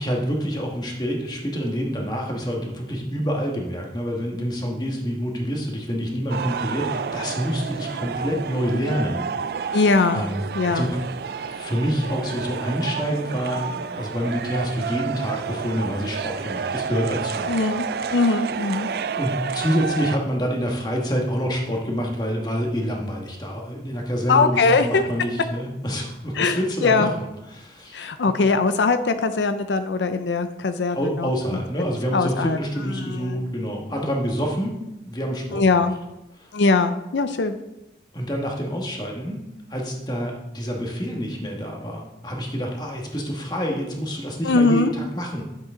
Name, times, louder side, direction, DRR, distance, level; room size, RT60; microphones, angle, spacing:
voice 1, 0.0-9.3 9.6-9.8 10.1-10.9 11.5-17.5 19.2-28.0 30.9-34.8 35.0-35.8 36.4-36.5 38.1-39.4 39.7-45.5, equal, 25° left, 0 dB, 1.5 m, -27 dB
sound 1, 6.3-20.2, right 6 dB, 60° right, 0.3 m, -30 dB
voice 2, 9.7-10.2 10.6-10.9 17.4-17.9 18.1-18.9 24.3-25.1 26.3-27.1 27.9-31.6 32.1-32.6 32.9-33.4 35.5-35.9 36.5-37.6 44.4-44.9, left 4 dB, 90° left, 9 dB, 0.5 m, -21 dB
10.5 x 7.5 x 3.8 m, 0.93 s
head